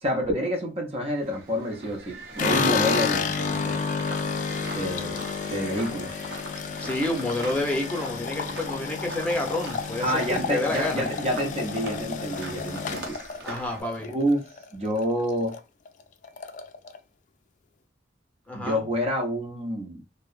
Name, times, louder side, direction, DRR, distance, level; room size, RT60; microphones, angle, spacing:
voice 1, 0.0-3.8 4.7-6.1 10.0-13.2 14.1-14.5 14.7-15.6 18.5-20.0, equal, 35° right, 0.5 m, -28 dB
sound 1, 1.1-13.8, right 2 dB, 65° right, 0.7 m, -42 dB
sound 2, 2.4-14.6 15.0-15.6 15.9-16.0 16.2-17.0, left 5 dB, 45° left, 0.3 m, -30 dB
voice 2, 6.8-10.1 10.5-11.1 13.4-14.1 18.5-18.8, left 1 dB, 10° left, 0.7 m, -29 dB
2.7 x 2.0 x 2.3 m
head